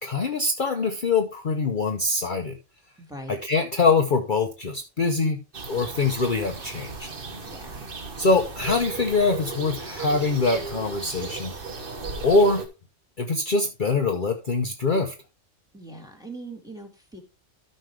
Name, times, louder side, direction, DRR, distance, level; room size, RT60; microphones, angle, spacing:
voice 1, 0.0-2.6 3.3-5.4 5.7-7.1 8.2-11.5 12.2-12.6 13.2-15.1, left 3 dB, 45° left, 4 dB, 0.9 m, -23 dB
voice 2, 3.0-3.4 7.5-7.9 15.7-17.2, right 2 dB, 5° right, 2 dB, 1.8 m, -41 dB
sound 1, 5.5-12.7, right 4 dB, 45° right, 1.4 m, -36 dB
13.0 x 5.4 x 3.3 m, 0.29 s
omnidirectional pair, 1.3 m